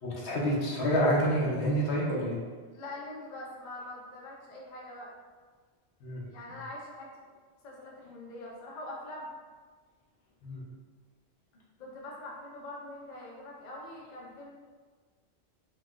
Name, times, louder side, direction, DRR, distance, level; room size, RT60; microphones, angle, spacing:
voice 1, 0.0-2.4 6.0-6.3 10.4-10.6, equal, 80° left, -4 dB, 1.0 m, -28 dB
voice 2, 2.7-5.1 6.3-7.1 7.6-9.3 11.8-14.5, left 1 dB, 50° left, -3 dB, 0.6 m, -43 dB
3.9 x 2.2 x 2.3 m, 1.5 s
omnidirectional pair, 1.1 m